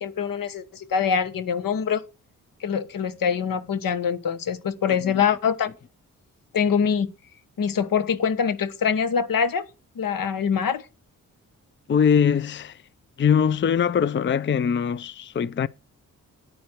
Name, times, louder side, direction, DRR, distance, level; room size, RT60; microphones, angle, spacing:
voice 1, 0.0-2.0 2.6-5.7 6.5-7.1 7.6-9.7 10.0-10.8, left 7 dB, 80° left, 1.3 m, -24 dB
voice 2, 11.9-12.8 13.2-15.7, left 7 dB, 35° left, 0.5 m, -22 dB
9.7 x 9.3 x 4.6 m
cardioid pair, 75°, 33 cm